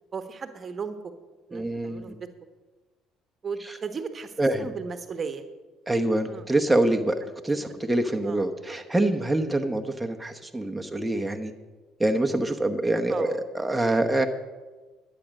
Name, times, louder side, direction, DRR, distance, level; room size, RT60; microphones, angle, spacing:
voice 1, 0.1-1.1 1.5-2.3 3.4-4.3 4.6-5.4 6.3-6.5 7.6-7.7 8.2-8.8 13.1-13.4, right 5 dB, 40° right, 8 dB, 1.1 m, -36 dB
voice 2, 1.5-2.2 4.4-4.7 5.9-7.2 7.4-11.5 12.0-14.3, right 1 dB, 10° right, 3 dB, 1.0 m, -25 dB
12.0 x 8.7 x 6.4 m, 1.3 s
supercardioid pair, 70°, 0 cm